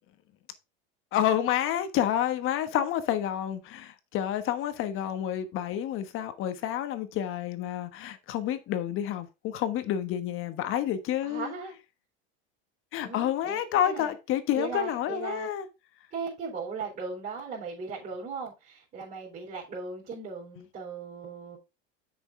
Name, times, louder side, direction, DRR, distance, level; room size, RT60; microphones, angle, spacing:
voice 1, 1.1-11.5 12.9-15.7, left 10 dB, 45° left, 1.3 m, -29 dB
voice 2, 11.2-11.8 13.0-14.1 14.6-15.5 16.1-21.6, right 5 dB, 30° right, 3.8 m, -38 dB
8.0 x 6.3 x 3.7 m
supercardioid pair, 130°, 30 cm